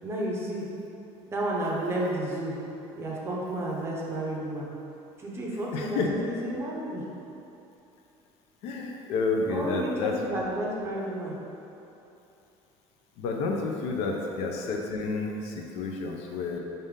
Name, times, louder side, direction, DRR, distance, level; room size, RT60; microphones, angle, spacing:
voice 1, 0.0-0.7 1.3-2.6 2.9-4.7 5.2-7.0 9.4-11.4, right 1 dB, 20° right, -4 dB, 0.6 m, -31 dB
voice 2, 5.7-6.1 8.6-10.2 13.2-16.6, left 4 dB, 65° left, 1 dB, 0.5 m, -30 dB
5.0 x 2.7 x 3.6 m, 2.9 s
cardioid pair, 160°, 12 cm